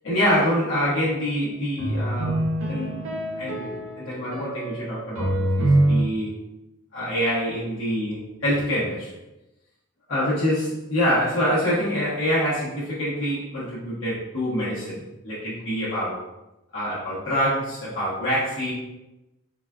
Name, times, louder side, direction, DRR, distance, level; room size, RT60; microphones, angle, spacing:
voice 1, 0.0-2.9 3.4-6.3 6.9-9.1 10.1-16.2 16.7-18.7, equal, 65° left, -10 dB, 0.9 m, -26 dB
sound 1, 1.8-6.0, right 1 dB, 85° right, 0.6 m, -25 dB
3.9 x 2.3 x 2.3 m, 0.96 s
head